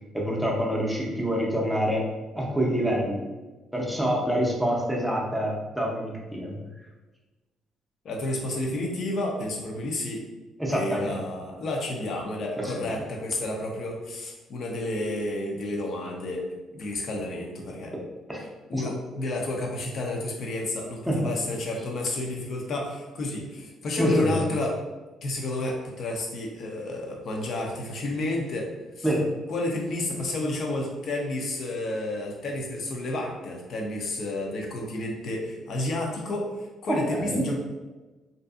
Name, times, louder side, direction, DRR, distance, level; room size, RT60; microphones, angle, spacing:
voice 1, 0.1-2.0 2.3-3.3 3.7-6.6 10.6-11.1 12.6-13.0 17.9-18.0 18.3-18.5 18.7-18.9 21.1-21.3 24.0-24.4 29.0-29.3 36.9-37.4, equal, 5° right, -3 dB, 0.6 m, -26 dB
voice 2, 8.0-10.2 10.7-16.4 16.7-17.9 18.7-24.8 25.2-28.7 29.0-29.1 29.5-36.5 36.8-37.6, left 1 dB, 55° left, 0 dB, 0.6 m, -31 dB
2.5 x 2.4 x 2.4 m, 1.2 s
cardioid pair, 105°, 0 cm